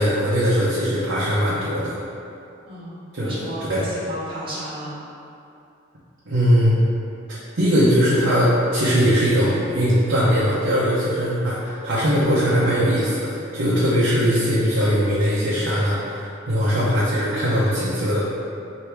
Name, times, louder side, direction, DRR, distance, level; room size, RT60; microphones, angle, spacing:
voice 1, 0.0-1.9 3.1-3.9 6.3-6.8 7.3-18.2, equal, 70° right, -8 dB, 0.7 m, -20 dB
voice 2, 2.6-5.0, right 1 dB, 25° right, -10 dB, 1.2 m, -33 dB
3.3 x 2.7 x 4.4 m, 2.6 s
head